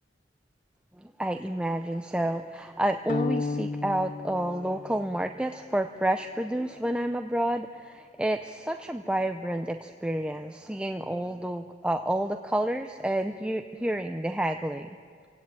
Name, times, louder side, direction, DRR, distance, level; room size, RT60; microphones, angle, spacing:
voice 1, 1.0-15.0, right 1 dB, 5° right, 6 dB, 0.6 m, -29 dB
sound 1, 3.1-5.4, left 3 dB, 50° left, 0.6 m, -33 dB
27.5 x 17.0 x 8.9 m, 2.1 s
head